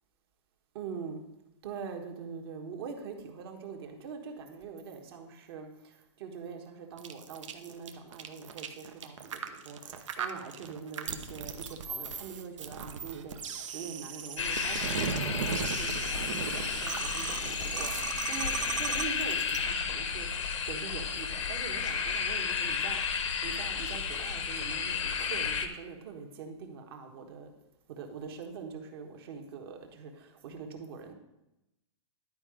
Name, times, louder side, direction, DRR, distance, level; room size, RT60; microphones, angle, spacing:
voice 1, 0.7-1.2 1.6-17.9 18.3-20.3 20.7-23.0 23.4-27.5 27.9-31.1, right 5 dB, 55° right, 4 dB, 1.4 m, -43 dB
sound 1, 7.0-19.6, right 6 dB, 90° right, 0.9 m, -37 dB
sound 2, 14.4-25.7, left 6 dB, 85° left, 1.0 m, -32 dB
11.5 x 4.7 x 5.0 m, 0.92 s
hypercardioid pair, 155°, 15 cm